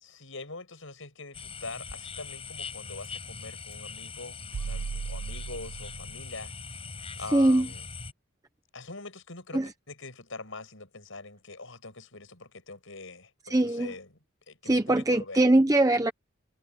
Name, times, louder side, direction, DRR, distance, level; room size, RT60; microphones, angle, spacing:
voice 1, 0.0-6.5 7.2-7.9 8.7-14.1 14.5-15.5, left 3 dB, 65° left, 5.9 m, -43 dB
sound 1, 1.3-8.1, left 5 dB, 25° left, 7.6 m, -41 dB
sound 2, 4.5-6.4, right 5 dB, 70° right, 0.4 m, -36 dB
voice 2, 7.3-7.7 9.5-9.7 13.5-13.9 14.7-16.1, right 1 dB, 15° right, 0.6 m, -22 dB
head